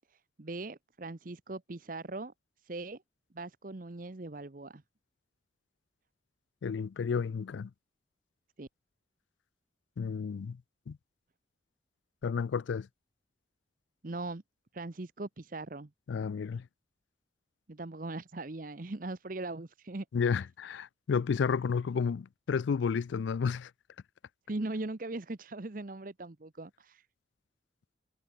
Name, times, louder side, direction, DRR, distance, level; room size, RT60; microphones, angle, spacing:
voice 1, 0.4-2.3 2.6-3.0 3.3-4.8 8.6-8.7 14.0-14.4 14.7-15.9 17.7-20.0 24.5-27.1, right 2 dB, 45° right, 0.9 m, -40 dB
voice 2, 6.6-7.7 10.0-10.6 10.9-11.0 12.2-12.9 16.1-16.6 20.1-23.7, left 6 dB, 75° left, 0.4 m, -31 dB
head